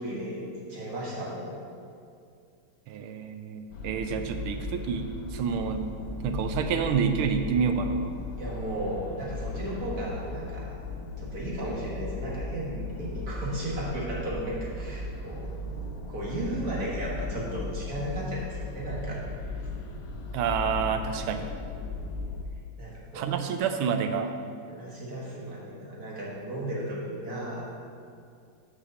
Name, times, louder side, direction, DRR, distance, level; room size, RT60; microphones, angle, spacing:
voice 1, 0.0-1.5 8.4-10.8 11.2-15.5 16.1-19.2 19.6-19.7 22.8-23.4 24.7-27.6, right 1 dB, 50° right, -4 dB, 1.9 m, -35 dB
voice 2, 2.9-5.9 6.2-8.1 20.3-21.5 23.1-24.3, right 6 dB, 90° right, 7 dB, 1.5 m, -28 dB
sound 1, 3.7-22.4, left 3 dB, 60° left, 1.0 m, -37 dB
6.8 x 5.1 x 6.6 m, 2.3 s
omnidirectional pair, 2.3 m